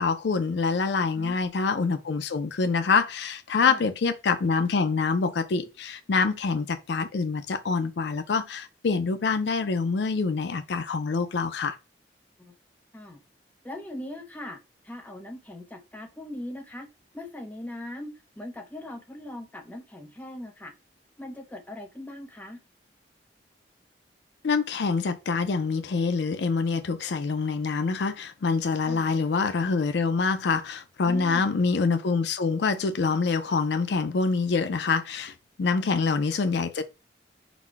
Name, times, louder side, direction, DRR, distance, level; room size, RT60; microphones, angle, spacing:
voice 1, 0.0-11.8 24.4-36.8, left 4 dB, 70° left, 0.4 m, -26 dB
voice 2, 13.6-14.6 14.8-16.9 17.1-20.7 21.2-22.6 28.9-29.2 31.0-31.5 35.8-35.9, left 1 dB, 10° left, 0.6 m, -40 dB
4.0 x 2.1 x 4.5 m
head